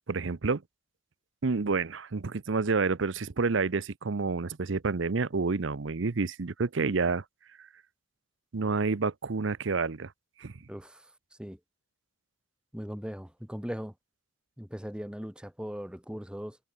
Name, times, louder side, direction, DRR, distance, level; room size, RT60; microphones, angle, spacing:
voice 1, 0.1-0.6 1.4-7.2 7.6-7.7 8.5-10.1 10.4-10.5, right 4 dB, 60° right, 0.7 m, -29 dB
voice 2, 10.7-11.1 11.4-11.6 12.7-13.9 14.6-16.6, equal, 5° right, 1.5 m, -39 dB
head